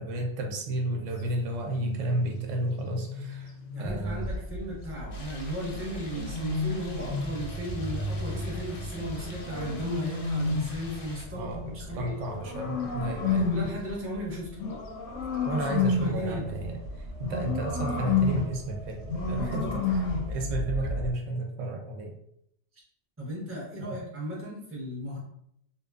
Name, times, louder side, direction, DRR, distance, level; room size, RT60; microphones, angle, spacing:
voice 1, 0.0-3.5 3.8-4.2 11.3-13.4 15.4-22.1 23.8-24.0, right 1 dB, 90° right, 2 dB, 0.9 m, -32 dB
sound 1, 1.6-4.0 5.6-7.4 8.8-10.8 11.8-13.9 14.5-16.3 17.2-18.6 19.1-20.3, left 4 dB, 90° left, 0.9 m, -31 dB
voice 2, 3.7-12.1 13.2-14.5 15.5-16.5 19.6-19.8 23.2-25.2, equal, 15° right, -4 dB, 0.5 m, -35 dB
sound 2, 3.8-21.1, equal, 60° right, 0.7 m, -39 dB
sound 3, 5.1-11.3, left 3 dB, 60° left, 0.7 m, -48 dB
2.7 x 2.2 x 2.3 m, 0.74 s
omnidirectional pair, 1.2 m